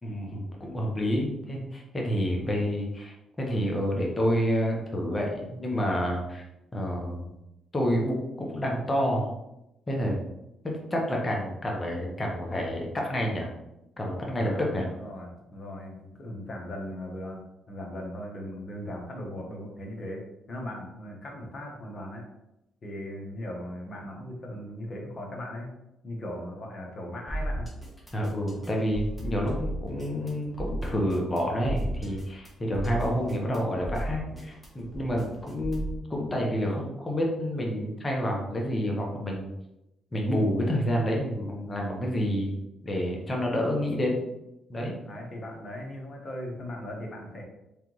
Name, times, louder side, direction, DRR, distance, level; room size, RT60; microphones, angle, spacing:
voice 1, 0.0-6.4 6.7-7.3 7.7-9.3 9.9-10.2 10.6-13.5 14.0-14.9 28.1-39.5 40.1-42.5 42.8-44.2 44.7-44.9, equal, 20° left, -1 dB, 0.9 m, -29 dB
voice 2, 14.3-22.3 22.8-25.7 26.0-27.7 35.1-35.5 45.0-47.4, left 1 dB, 40° left, 0 dB, 1.1 m, -38 dB
sound 1, 27.3-36.0, right 1 dB, 5° left, 1.2 m, -35 dB
3.6 x 3.4 x 3.1 m, 0.89 s
cardioid pair, 90°, 0 cm